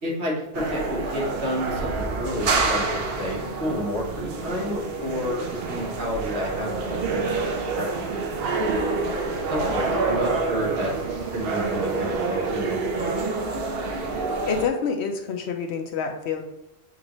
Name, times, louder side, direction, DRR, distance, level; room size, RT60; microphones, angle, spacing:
voice 1, 0.0-7.3 7.6-8.2 9.5-13.4, left 1 dB, 85° right, -3 dB, 1.6 m, -30 dB
sound 1, 0.5-14.7, right 3 dB, 70° right, 0.8 m, -27 dB
voice 2, 14.5-16.4, left 6 dB, 85° left, 5 dB, 1.0 m, -27 dB
7.0 x 2.5 x 3.0 m, 0.90 s
omnidirectional pair, 1.1 m